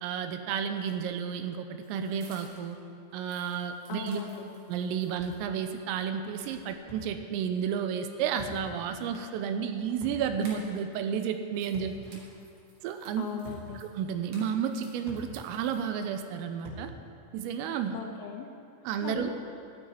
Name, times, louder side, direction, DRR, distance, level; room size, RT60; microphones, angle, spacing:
voice 1, 0.0-2.8 3.1-4.2 4.7-12.3 12.8-13.3 13.8-16.9 17.3-18.0 18.8-19.3, right 7 dB, 80° right, 8 dB, 3.4 m, -32 dB
sound 1, 0.7-2.8 3.1-5.4 5.8-5.9 6.3-7.1 8.7-11.0 11.3-16.2, right 2 dB, 50° right, 2.5 m, -56 dB
voice 2, 3.9-4.5 13.2-13.8 17.9-18.5 19.0-19.3, left 8 dB, 75° left, 2 dB, 2.7 m, -38 dB
sound 2, 5.2-5.4 6.9-7.1 8.4-8.6 10.0-10.3 11.7-12.0 13.4-13.7 15.1-15.3 16.6-16.9, equal, 25° left, 2.7 m, -44 dB
12.5 x 9.0 x 9.8 m, 2.5 s
omnidirectional pair, 6.0 m